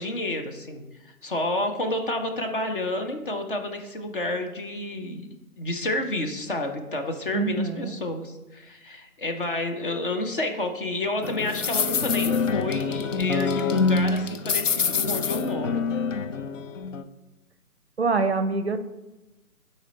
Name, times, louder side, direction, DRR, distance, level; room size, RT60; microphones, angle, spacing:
voice 1, 0.0-5.3 5.6-15.8, left 2 dB, 35° left, 5 dB, 0.9 m, -30 dB
voice 2, 7.3-8.0 18.0-18.8, right 4 dB, 45° right, 10 dB, 0.5 m, -25 dB
sound 1, 11.2-17.0, left 5 dB, 55° left, 0.6 m, -25 dB
10.0 x 4.3 x 3.9 m, 1.0 s
figure-of-eight pair, 150°, 45 cm